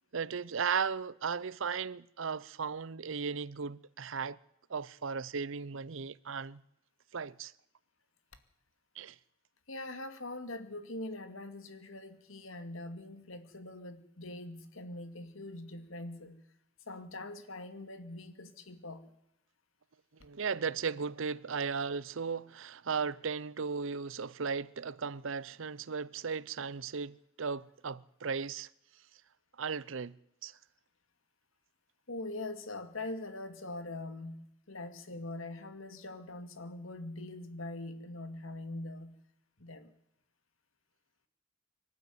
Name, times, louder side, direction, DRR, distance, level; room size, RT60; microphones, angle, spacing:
voice 1, 0.1-4.4 4.7-6.6 7.1-7.5 9.0-9.2 20.2-28.7 29.6-30.1 30.4-30.6, right 5 dB, 65° right, 0.7 m, -36 dB
voice 2, 9.7-16.4 16.9-19.1 32.1-39.2 39.6-39.9, left 2 dB, 75° left, 2.3 m, -43 dB
24.5 x 12.0 x 9.6 m
head